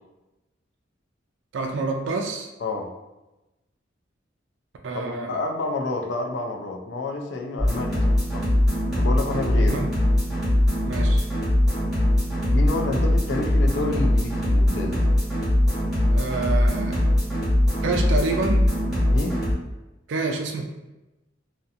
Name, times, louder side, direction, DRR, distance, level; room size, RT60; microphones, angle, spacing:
voice 1, 1.5-2.5 4.8-5.4 9.6-9.9 10.9-11.3 16.1-17.0 17.8-18.7 20.1-20.6, right 3 dB, 75° right, 2 dB, 0.3 m, -28 dB
voice 2, 2.6-2.9 4.9-8.5 9.0-9.8 12.5-15.0 19.1-19.4, left 2 dB, 65° left, 2 dB, 0.4 m, -29 dB
sound 1, 7.6-19.5, left 1 dB, ahead, 1.2 m, -21 dB
2.7 x 2.1 x 2.4 m, 1.0 s
head